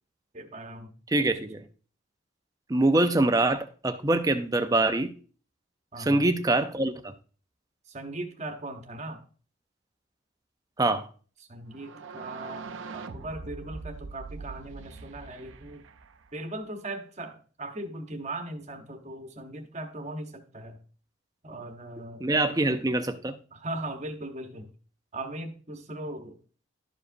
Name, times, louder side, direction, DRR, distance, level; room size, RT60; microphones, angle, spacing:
voice 1, 0.3-0.9 1.4-1.5 5.9-6.3 7.9-9.2 11.5-15.8 16.3-20.8 21.4-22.2 23.5-24.7 25.1-26.4, right 1 dB, 35° right, 1.0 m, -39 dB
voice 2, 1.1-1.6 2.7-5.1 6.0-7.1 10.8-11.1 22.2-23.3, right 2 dB, 15° right, 0.5 m, -24 dB
sound 1, 11.7-16.6, right 4 dB, 70° right, 0.6 m, -42 dB
12.0 x 4.9 x 2.6 m
head